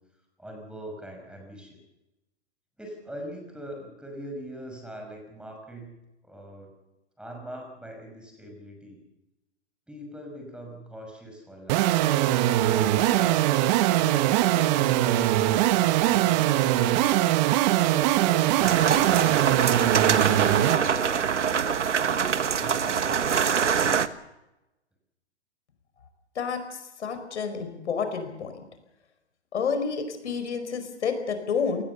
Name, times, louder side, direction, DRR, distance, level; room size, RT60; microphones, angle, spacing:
voice 1, 0.4-1.8 2.8-6.0 6.2-6.8 7.2-9.0 9.9-11.9 17.7-19.4 22.6-23.4, equal, 5° right, 3 dB, 5.8 m, -42 dB
sound 1, 11.7-20.8, right 14 dB, 40° right, 1.4 m, -22 dB
sound 2, 18.6-24.1, right 7 dB, 85° right, 1.4 m, -24 dB
voice 2, 27.0-28.5 29.5-31.8, left 6 dB, 75° left, 8 dB, 5.0 m, -29 dB
27.0 x 19.5 x 7.0 m, 0.97 s
hypercardioid pair, 125°, 35 cm